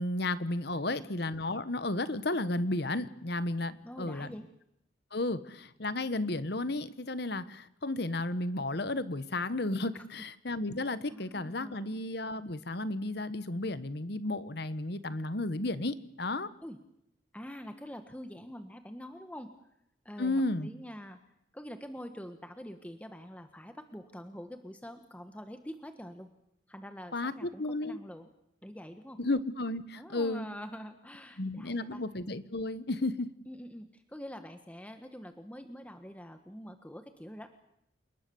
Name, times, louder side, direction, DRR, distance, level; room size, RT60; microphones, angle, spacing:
voice 1, 0.0-4.3 5.1-16.5 20.2-20.7 27.1-28.0 29.2-30.5 31.4-33.3, left 2 dB, 55° left, 14 dB, 1.2 m, -33 dB
voice 2, 0.8-1.1 3.8-4.5 9.9-10.0 11.1-11.9 16.6-16.8 17.3-19.5 20.0-21.2 21.5-26.3 26.7-28.3 28.6-29.2 30.0-32.0 33.5-37.7, equal, 5° left, 7 dB, 1.3 m, -45 dB
29.0 x 19.5 x 7.0 m, 0.79 s
head